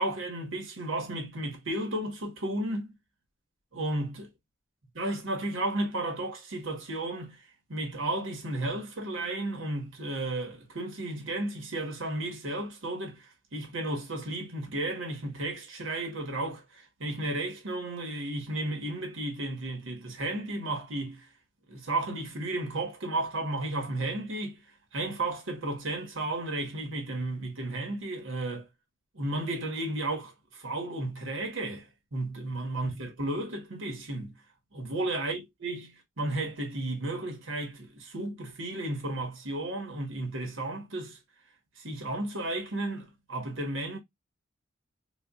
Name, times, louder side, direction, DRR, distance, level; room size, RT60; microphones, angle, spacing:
voice 1, 0.0-2.9 3.7-4.3 4.9-7.4 7.7-21.3 21.7-24.6 24.9-28.7 29.1-30.3 30.6-31.9 32.1-34.3 34.7-41.2 41.8-44.0, right 2 dB, 70° right, 1.4 m, -33 dB
4.1 x 2.5 x 2.4 m
head